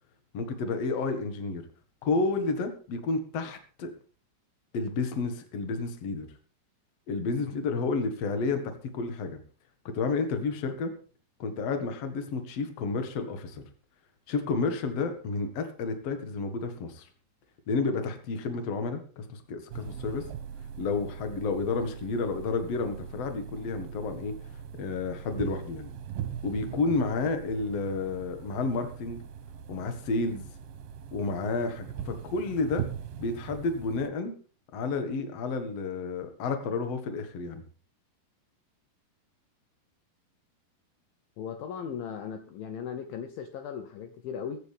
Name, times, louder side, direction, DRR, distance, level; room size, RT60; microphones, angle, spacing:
voice 1, 0.3-1.6 2.0-3.9 4.7-6.3 7.1-9.4 9.8-10.9 11.4-13.6 14.3-17.1 17.7-20.3 20.8-24.4 24.8-25.9 26.4-29.2 29.7-30.5 31.1-32.8 33.2-34.3 34.7-37.6, left 3 dB, 50° left, 7 dB, 2.3 m, -31 dB
sound 1, 19.7-34.1, right 8 dB, 70° right, 2.5 m, -41 dB
voice 2, 41.4-44.6, left 7 dB, 70° left, 6 dB, 2.6 m, -37 dB
22.0 x 9.4 x 3.6 m, 0.39 s
omnidirectional pair, 4.6 m